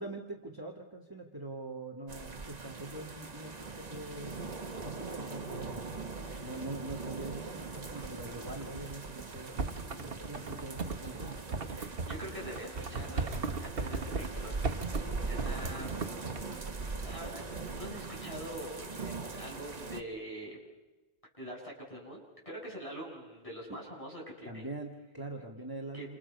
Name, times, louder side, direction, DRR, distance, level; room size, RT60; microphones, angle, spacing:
voice 1, 0.0-5.9 6.4-9.6 10.0-11.3 23.7-23.8 24.4-26.2, right 2 dB, 20° right, 0 dB, 2.0 m, -43 dB
sound 1, 2.1-20.0, right 3 dB, 40° right, 1.4 m, -41 dB
sound 2, 6.9-19.1 19.3-19.4, right 3 dB, 85° right, 1.6 m, -50 dB
sound 3, 9.6-14.3 14.6-15.0 15.4-16.4, right 4 dB, 60° right, 1.4 m, -36 dB
voice 2, 11.7-14.7 14.9-15.9 17.0-17.4 17.7-20.6 21.4-24.7 25.9-26.1, equal, 30° left, -2 dB, 7.8 m, -45 dB
29.5 x 28.5 x 5.5 m, 1.1 s
omnidirectional pair, 1.1 m